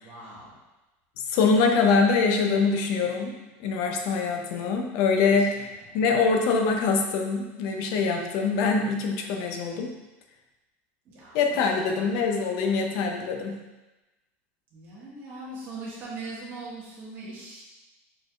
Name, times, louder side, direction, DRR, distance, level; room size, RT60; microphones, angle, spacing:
voice 1, 0.0-0.5 5.2-5.8 11.0-12.3 14.7-17.6, right 2 dB, 30° right, -7 dB, 1.5 m, -41 dB
voice 2, 1.3-10.0 11.3-13.6, left 4 dB, 55° left, 3 dB, 0.6 m, -24 dB
4.7 x 4.5 x 2.4 m, 1.1 s
supercardioid pair, 165°, 7 cm